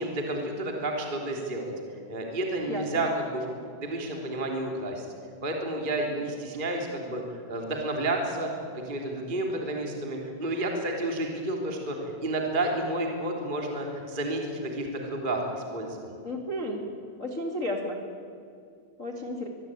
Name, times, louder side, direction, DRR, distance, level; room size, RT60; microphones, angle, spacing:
voice 1, 0.0-3.4 3.8-5.1 5.4-16.2, right 1 dB, 15° right, 1 dB, 2.3 m, -31 dB
voice 2, 2.7-3.1 16.2-16.8 17.2-18.0 19.0-19.5, left 1 dB, 60° left, 2 dB, 0.8 m, -32 dB
24.5 x 22.5 x 9.1 m, 2.4 s
omnidirectional pair, 5.9 m